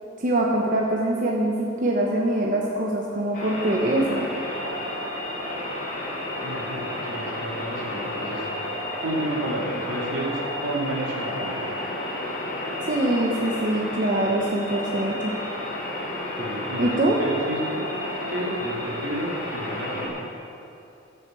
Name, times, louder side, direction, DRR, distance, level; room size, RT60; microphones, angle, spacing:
voice 1, 0.2-4.3 12.9-15.3 16.8-17.2, right 1 dB, 40° right, -2 dB, 1.1 m, -23 dB
sound 1, 3.3-20.1, left 1 dB, 45° left, 3.0 m, -31 dB
voice 2, 6.4-8.5 9.0-11.6 16.4-17.8 18.3-20.2, right 1 dB, 70° right, -3 dB, 2.6 m, -31 dB
15.0 x 6.7 x 7.5 m, 2.6 s
head